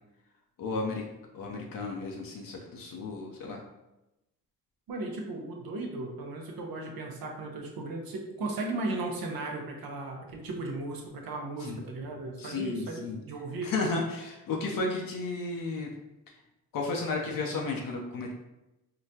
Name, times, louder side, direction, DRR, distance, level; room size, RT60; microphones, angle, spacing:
voice 1, 0.6-1.0 1.3-3.6 11.6-11.8 12.4-13.2 13.6-15.9 16.7-18.3, left 3 dB, 65° left, 0 dB, 0.6 m, -33 dB
voice 2, 4.9-13.7, right 2 dB, 75° right, 1 dB, 0.8 m, -36 dB
3.8 x 2.2 x 2.7 m, 0.97 s
supercardioid pair, 50°, 36 cm